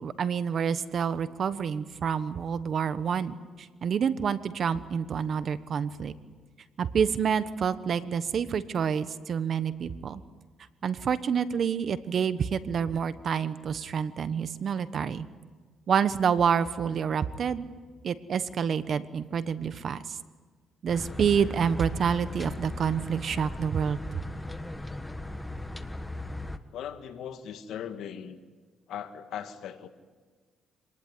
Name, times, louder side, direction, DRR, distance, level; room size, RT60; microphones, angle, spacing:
voice 1, 0.0-6.1 6.8-10.2 10.8-15.3 15.9-17.6 18.0-20.2 20.8-24.2, right 7 dB, 55° right, 13 dB, 1.2 m, -28 dB
sound 1, 20.9-26.6, left 1 dB, 10° left, 1.4 m, -38 dB
voice 2, 26.7-28.4 28.9-29.9, left 9 dB, 80° left, 8 dB, 1.8 m, -39 dB
25.5 x 19.5 x 9.7 m, 1.5 s
cardioid pair, 90°, 0 cm